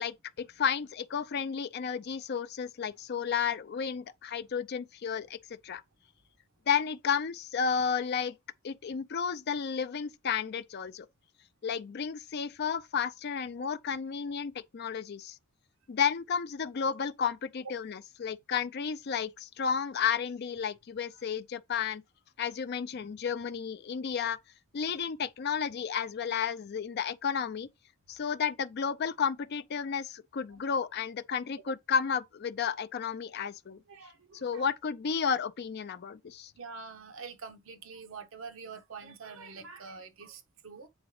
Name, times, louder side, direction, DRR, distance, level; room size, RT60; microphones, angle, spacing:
voice 1, 0.0-5.8 6.7-8.3 8.6-11.1 11.6-15.4 15.9-22.0 22.4-24.4 24.7-27.7 28.1-33.8 34.3-36.5, left 6 dB, 50° left, 0.4 m, -32 dB
voice 2, 33.9-34.6 36.6-40.9, right 5 dB, 70° right, 0.8 m, -46 dB
8.0 x 3.9 x 3.1 m
head